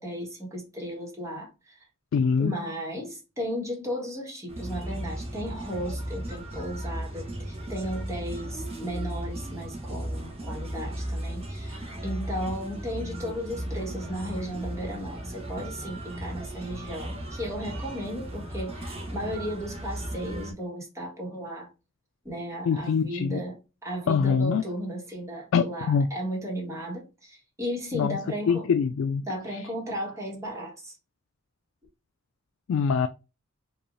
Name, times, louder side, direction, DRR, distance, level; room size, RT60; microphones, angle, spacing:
voice 1, 0.0-1.8 2.4-21.7 22.2-28.6 29.2-31.0, equal, 15° right, 1.5 m, -35 dB
voice 2, 2.1-2.5 22.7-23.4 24.1-24.6 25.5-26.1 27.9-28.2 28.5-29.2 32.7-33.1, left 6 dB, 75° left, 0.3 m, -24 dB
sound 1, 4.5-20.5, right 1 dB, 30° right, 1.1 m, -36 dB
4.7 x 2.6 x 2.6 m
head